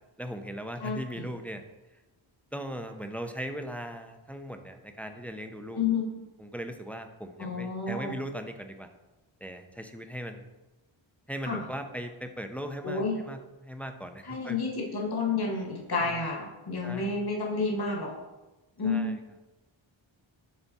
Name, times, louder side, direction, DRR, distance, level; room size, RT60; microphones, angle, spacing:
voice 1, 0.2-1.6 2.5-5.8 6.4-8.9 9.4-10.5 11.3-14.6 16.0-16.2 16.8-17.1 18.8-19.2, equal, 5° left, 6 dB, 0.4 m, -38 dB
voice 2, 0.8-1.3 5.7-6.2 7.4-8.1 11.4-11.6 12.8-13.2 14.2-18.1 18.8-19.2, left 4 dB, 50° left, -1 dB, 1.5 m, -30 dB
8.0 x 3.4 x 4.1 m, 1.1 s
wide cardioid pair, 120°, 49 cm